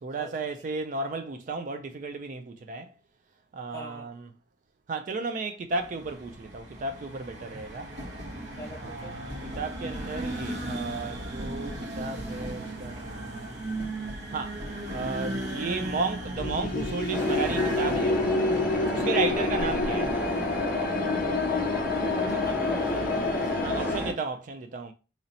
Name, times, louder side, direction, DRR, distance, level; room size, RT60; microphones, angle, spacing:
voice 1, 0.0-2.9 3.5-4.3 4.9-7.9 8.8-13.7 14.3-14.6 14.9-18.3 18.9-20.1 23.6-24.9, right 3 dB, 40° right, 0.3 m, -34 dB
voice 2, 3.7-4.1 8.6-9.2 21.4-23.9, equal, 15° left, 1.1 m, -41 dB
sound 1, 5.7-20.6, right 1 dB, 60° right, 1.1 m, -37 dB
sound 2, 16.4-24.0, left 4 dB, 45° left, 0.4 m, -29 dB
sound 3, 17.1-24.1, equal, 10° right, 0.8 m, -31 dB
3.1 x 2.7 x 4.0 m
head